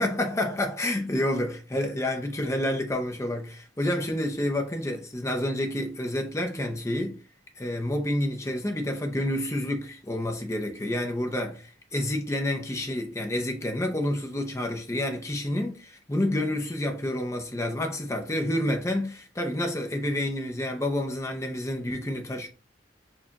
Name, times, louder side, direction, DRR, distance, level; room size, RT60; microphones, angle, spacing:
voice 1, 0.0-7.2 7.6-22.5, left 1 dB, 15° left, 0.5 m, -29 dB
4.4 x 2.4 x 2.8 m
head